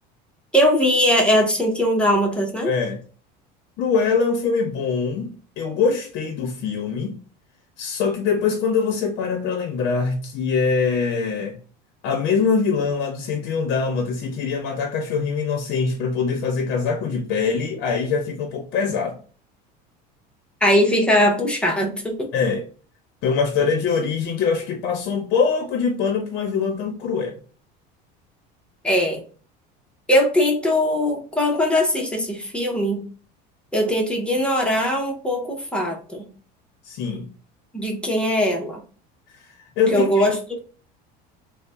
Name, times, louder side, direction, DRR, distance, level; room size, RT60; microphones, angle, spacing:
voice 1, 0.5-2.7 20.6-22.3 28.8-29.2 30.1-33.0 33.7-36.3 37.7-38.8 39.9-40.4, equal, 5° left, 0.6 m, -20 dB
voice 2, 2.6-3.0 3.8-7.2 7.8-11.6 12.0-19.2 22.3-22.6 23.2-27.4 36.8-37.3 39.4-40.3, left 5 dB, 50° left, 0.6 m, -23 dB
3.9 x 2.0 x 3.3 m
cardioid pair, 160°, 20 cm